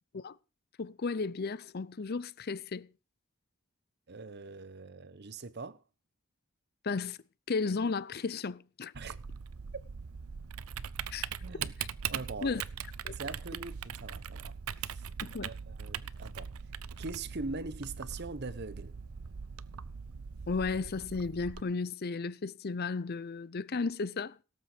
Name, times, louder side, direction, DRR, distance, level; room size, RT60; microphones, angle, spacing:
voice 1, 0.8-2.9 6.8-7.2 7.5-8.9 11.1-11.3 11.8-11.9 12.4-12.6 13.0-13.1 15.2-15.5 20.5-24.4, left 4 dB, 45° left, 0.6 m, -34 dB
voice 2, 4.1-5.8 8.9-9.2 11.4-11.7 12.1-12.6 13.1-14.5 14.8-15.1 15.4-16.5 17.0-18.9, right 3 dB, 50° right, 0.9 m, -42 dB
Typing, 8.9-21.6, right 7 dB, 90° right, 0.7 m, -41 dB
17.5 x 8.4 x 5.0 m
head